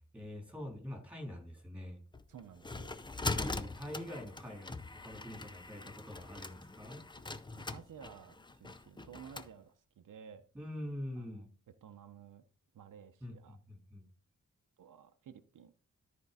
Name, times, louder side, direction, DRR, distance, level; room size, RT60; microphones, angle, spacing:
voice 1, 0.1-2.0 3.4-7.0 10.5-11.5 13.2-14.0, left 1 dB, 5° right, 3.4 m, -45 dB
sound 1, 2.1-9.5, left 3 dB, 15° left, 0.5 m, -42 dB
voice 2, 2.3-3.0 7.5-10.4 11.2-11.5 11.8-12.4 12.7-13.6 14.8-15.7, right 8 dB, 80° right, 0.8 m, -54 dB
13.0 x 4.6 x 4.1 m
wide cardioid pair, 135°, 31 cm